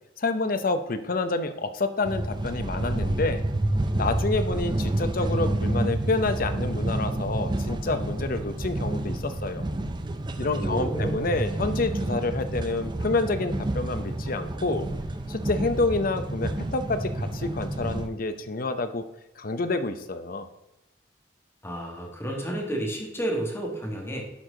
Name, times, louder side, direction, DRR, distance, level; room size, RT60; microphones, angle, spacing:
voice 1, 0.2-3.4 4.0-9.7 10.4-14.8 15.3-19.0 19.4-20.5, left 3 dB, 50° left, 9 dB, 0.7 m, -28 dB
sound 1, 2.0-18.1, right 1 dB, 25° right, 0.5 m, -29 dB
voice 2, 10.5-11.3 21.6-24.2, right 1 dB, 15° left, 0 dB, 1.6 m, -31 dB
11.5 x 4.6 x 3.8 m, 0.94 s
head